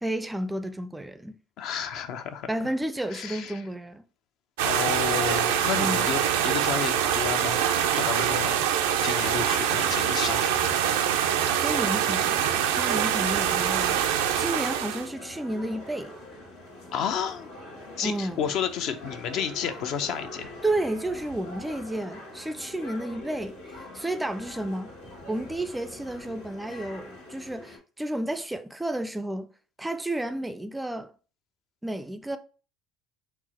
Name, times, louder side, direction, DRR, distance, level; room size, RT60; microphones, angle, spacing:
voice 1, 0.0-1.4 2.5-4.0 5.7-6.1 11.6-14.0 14.4-16.1 18.0-18.4 20.6-24.9 25.3-29.5 29.8-31.1 31.8-32.4, right 1 dB, 10° right, 0.4 m, -31 dB
voice 2, 1.6-2.5 3.1-3.6 4.6-7.7 7.9-8.7 9.0-10.7 16.9-17.5 18.0-20.5, left 8 dB, 65° left, 0.5 m, -31 dB
sound 1, 4.6-15.1, right 9 dB, 85° right, 0.4 m, -24 dB
sound 2, 9.1-27.8, left 1 dB, 90° left, 1.5 m, -43 dB
4.5 x 2.0 x 4.2 m
hypercardioid pair, 80°, 0 cm